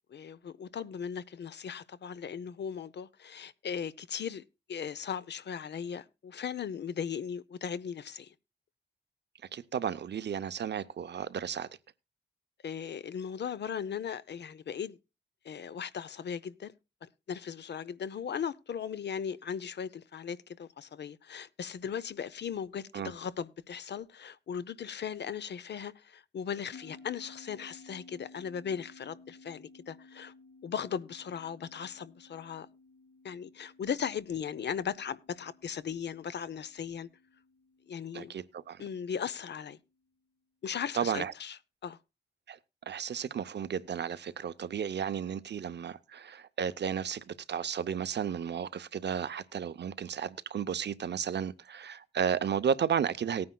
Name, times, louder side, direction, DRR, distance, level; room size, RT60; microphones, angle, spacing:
voice 1, 0.1-4.4 4.7-8.3 12.6-15.0 15.4-16.7 17.0-30.3 30.6-32.7 33.2-37.1 37.9-38.3 38.8-39.8 40.6-42.0, left 7 dB, 60° left, 0.6 m, -38 dB
voice 2, 9.5-11.7 22.9-23.1 38.1-38.8 41.0-41.3 42.5-42.6 42.9-47.2 47.5-53.5, right 8 dB, 60° right, 0.6 m, -33 dB
sound 1, 26.7-39.5, left 3 dB, 85° left, 2.7 m, -57 dB
19.0 x 9.5 x 2.2 m
wide cardioid pair, 155°, 20 cm